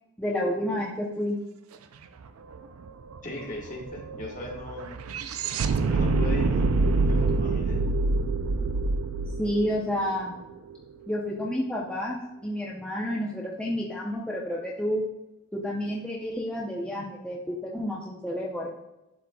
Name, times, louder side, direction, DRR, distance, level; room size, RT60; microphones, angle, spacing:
voice 1, 0.2-1.4 9.4-10.3 11.1-15.0 15.5-18.7, equal, 5° left, -5 dB, 0.6 m, -30 dB
sound 1, 2.2-2.3 2.5-10.8, right 3 dB, 85° right, 0.4 m, -26 dB
voice 2, 3.2-4.9 5.8-6.7 7.1-8.0, left 1 dB, 35° left, -2 dB, 1.4 m, -38 dB
11.5 x 4.0 x 2.3 m, 0.95 s
head